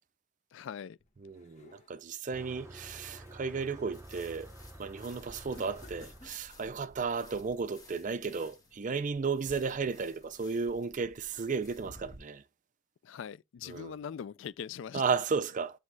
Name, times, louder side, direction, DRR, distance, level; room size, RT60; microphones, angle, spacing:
voice 1, 0.5-1.0 13.0-15.0, left 7 dB, 60° left, 0.3 m, -41 dB
sound 1, 1.0-2.1 2.6-4.0 4.4-4.7 5.5-6.9, left 3 dB, 35° left, 1.4 m, -59 dB
voice 2, 1.2-4.5 4.8-12.4 13.6-14.0 14.9-15.8, right 5 dB, 35° right, 0.4 m, -34 dB
Motor vehicle (road), 2.3-7.5, right 1 dB, 15° right, 0.8 m, -50 dB
sound 2, 3.9-12.2, left 1 dB, 15° left, 1.3 m, -55 dB
9.5 x 3.4 x 3.2 m
head